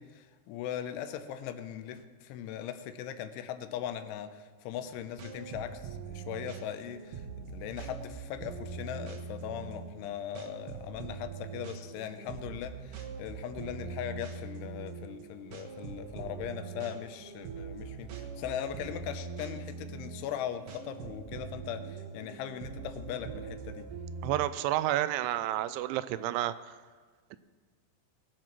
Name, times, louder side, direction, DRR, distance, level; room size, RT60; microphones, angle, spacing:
voice 1, 0.0-23.9, left 10 dB, 85° left, 9 dB, 3.3 m, -39 dB
sound 1, 4.8-24.5, right 5 dB, 65° right, 2.2 m, -43 dB
voice 2, 24.2-26.8 27.3-27.4, right 14 dB, 85° right, 14 dB, 3.0 m, -30 dB
20.5 x 7.6 x 6.0 m, 1.4 s
omnidirectional pair, 5.4 m